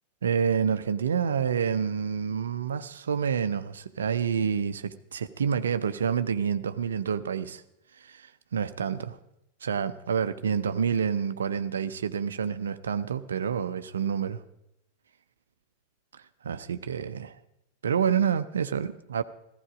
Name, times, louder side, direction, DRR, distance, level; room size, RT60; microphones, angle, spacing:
voice 1, 0.2-7.6 8.0-9.2 9.6-14.4 16.4-17.3 17.8-19.2, right 7 dB, 65° right, 12 dB, 0.6 m, -28 dB
15.0 x 15.0 x 5.0 m, 0.85 s
figure-of-eight pair, 90°, 0 cm